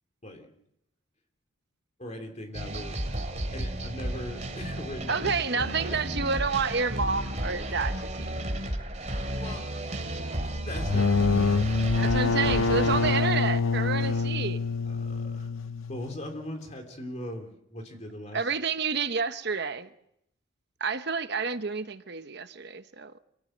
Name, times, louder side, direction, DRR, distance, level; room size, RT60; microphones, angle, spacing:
voice 1, 2.0-3.0 3.5-6.1 7.7-7.8 9.1-10.0 10.4-11.7 12.0-12.2 14.0-14.3 14.9-15.5 15.9-18.5, left 1 dB, 35° left, 3.2 m, -41 dB
sound 1, 2.5-13.1, right 1 dB, 35° right, 3.1 m, -33 dB
voice 2, 5.1-8.3 11.9-14.6 18.3-19.9 20.8-23.1, right 5 dB, 55° right, 1.0 m, -29 dB
sound 2, 10.8-16.3, left 4 dB, 70° left, 0.8 m, -26 dB
26.5 x 16.0 x 7.9 m
head